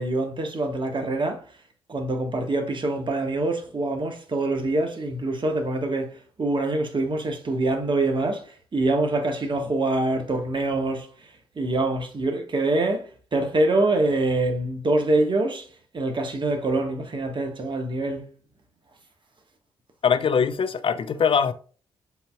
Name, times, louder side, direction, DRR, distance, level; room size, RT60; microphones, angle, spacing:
voice 1, 0.0-1.4 1.9-6.1 6.4-8.5 8.7-11.1 11.6-15.6 15.9-18.2, right 2 dB, 40° right, 1.2 m, -25 dB
voice 2, 20.0-21.5, left 6 dB, 45° left, 0.5 m, -22 dB
7.8 x 2.8 x 2.2 m
hypercardioid pair, 45°, 13 cm